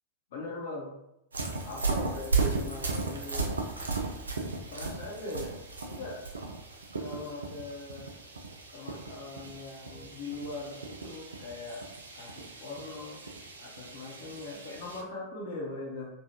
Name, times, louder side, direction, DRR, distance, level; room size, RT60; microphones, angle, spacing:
voice 1, 0.3-0.9 1.6-3.6 4.7-5.6 5.8-6.2 7.0-8.1 8.7-11.9 12.1-13.2 13.6-16.1, left 2 dB, 60° left, -3 dB, 0.9 m, -40 dB
sound 1, 1.3-15.0, right 3 dB, 75° right, 0.4 m, -36 dB
3.2 x 2.3 x 2.8 m, 0.86 s
figure-of-eight pair, 90°, 0 cm